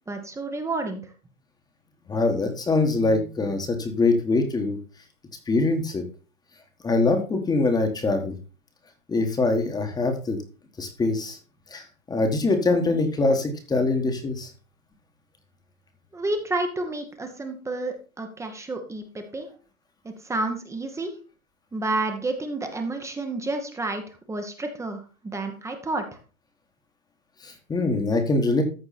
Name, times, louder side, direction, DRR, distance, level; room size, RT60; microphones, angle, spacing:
voice 1, 0.1-1.0 16.1-19.5 20.0-21.1 21.7-26.0, right 2 dB, 5° right, 6 dB, 1.1 m, -30 dB
voice 2, 2.1-4.8 5.5-6.0 6.8-8.4 9.1-10.4 10.8-11.4 11.7-11.8 12.1-14.5 27.4-28.6, left 3 dB, 10° left, 6 dB, 1.5 m, -23 dB
14.0 x 4.8 x 4.2 m, 0.35 s
hypercardioid pair, 135°, 43 cm